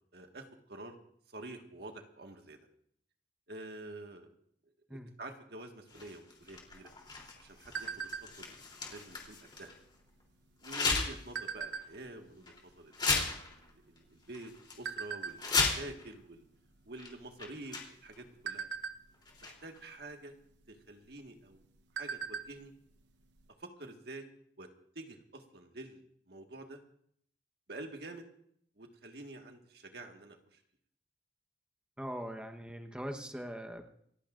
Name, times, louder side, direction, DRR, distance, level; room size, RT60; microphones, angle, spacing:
voice 1, 0.1-1.0 1.3-2.6 3.5-4.3 4.9-6.9 7.4-8.5 8.9-9.7 10.6-13.1 13.5-16.5 16.8-18.7 19.4-20.3 20.7-21.6 22.0-22.7 23.6-24.3 24.6-24.7 24.9-26.8 27.7-28.2 28.8-30.6, right 2 dB, 65° right, 4 dB, 1.6 m, -48 dB
sound 1, 5.9-9.8 10.6-11.3 11.7-11.8 12.5-12.6 12.9-14.0 14.3-14.8 15.2-16.1 17.0-17.1 17.4-18.2 19.2-19.8, left 4 dB, 25° left, 3.2 m, -35 dB
sound 2, 6.6-8.6 9.0-9.3 9.6-10.0 10.7-12.2 12.8-12.9 13.1-14.4 14.9-15.4 15.9-16.1 16.4-16.6 17.1-17.6 18.1-19.5 20.5-20.7 21.1-21.2 21.6-22.6 22.9-23.0 23.4-23.5, right 6 dB, 85° right, 0.9 m, -40 dB
voice 2, 32.0-33.9, equal, 5° right, 4 dB, 1.0 m, -41 dB
28.0 x 15.0 x 2.5 m, 0.68 s
head